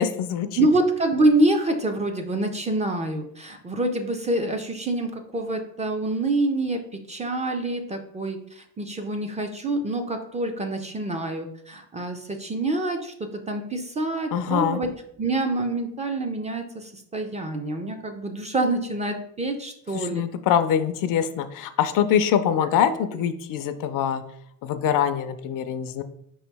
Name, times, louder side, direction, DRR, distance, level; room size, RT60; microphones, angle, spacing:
voice 1, 0.0-0.6 14.3-14.8 19.9-24.2 24.6-26.0, left 8 dB, 55° left, 10 dB, 0.5 m, -24 dB
voice 2, 0.6-14.9 15.2-20.2, right 2 dB, 20° right, 5 dB, 0.4 m, -26 dB
5.3 x 3.0 x 3.3 m, 0.72 s
cardioid pair, 110°, 39 cm